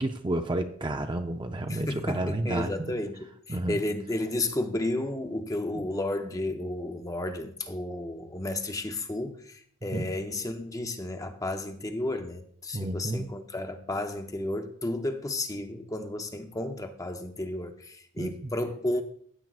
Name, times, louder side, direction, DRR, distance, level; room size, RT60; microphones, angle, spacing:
voice 1, 0.0-2.9 3.5-3.8 9.9-10.1 12.7-13.3 18.2-18.5, right 1 dB, 20° right, 0.5 m, -31 dB
voice 2, 1.7-19.0, left 1 dB, 15° left, 0.7 m, -32 dB
15.0 x 8.7 x 2.4 m
head